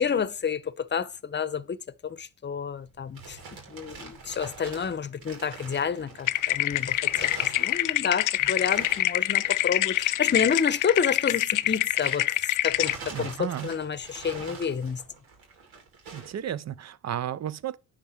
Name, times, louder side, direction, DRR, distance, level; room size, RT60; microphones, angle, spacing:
voice 1, 0.0-1.8 2.0-15.0, left 6 dB, 30° left, 0.8 m, -29 dB
sound 1, 2.8-12.4 12.7-16.4, right 4 dB, 85° right, 2.7 m, -45 dB
sound 2, 6.3-13.0, left 15 dB, 60° left, 0.5 m, -25 dB
voice 2, 13.1-13.7 16.1-17.8, right 10 dB, 50° right, 0.6 m, -33 dB
9.9 x 3.7 x 6.9 m
supercardioid pair, 65°, 36 cm